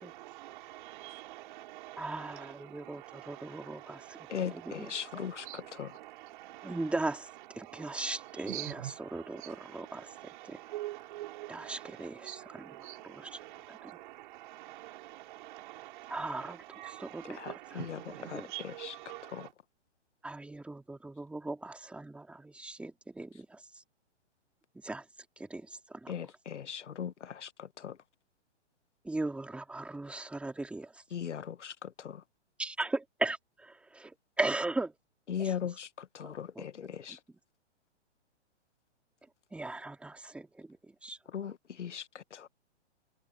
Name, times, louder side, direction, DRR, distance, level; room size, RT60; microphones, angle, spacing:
voice 1, 0.0-6.9 7.6-19.5, right 16 dB, 45° right, 5.3 m, -46 dB
voice 2, 2.0-5.3 6.6-7.3 7.6-10.1 10.4-10.6 11.5-12.7 13.0-13.4 13.7-13.8 16.1-17.8 18.2-18.5 20.2-23.6 24.8-25.0 25.4-26.1 29.0-31.0 32.6-34.9 35.4-35.5 36.2-36.7 37.1-37.2 39.5-41.2, right 2 dB, 5° right, 2.8 m, -38 dB
voice 3, 4.3-5.9 17.4-18.0 18.3-18.9 19.3-19.5 26.1-28.0 31.1-32.2 35.3-37.2 41.3-42.5, left 8 dB, 85° left, 1.6 m, -39 dB
hypercardioid pair, 145°, 35 cm